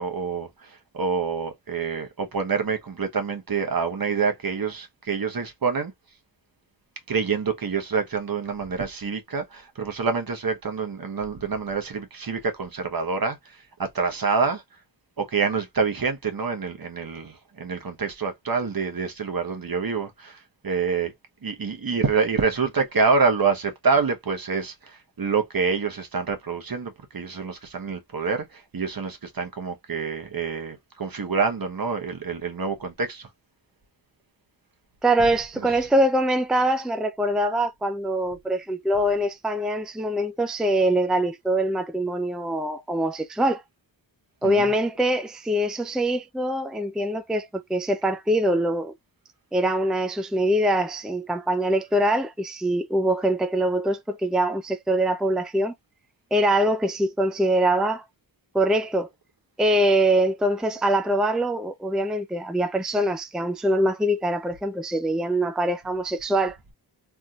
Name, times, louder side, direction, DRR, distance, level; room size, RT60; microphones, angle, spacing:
voice 1, 0.0-5.9 7.1-14.6 15.2-21.1 21.4-33.3 35.6-35.7 44.4-44.7, right 5 dB, 50° right, 1.1 m, -27 dB
voice 2, 35.0-43.6 44.4-48.9 49.5-55.7 56.3-58.0 58.5-59.1 59.6-66.6, right 1 dB, ahead, 0.5 m, -23 dB
3.5 x 2.6 x 2.3 m
cardioid pair, 50°, 43 cm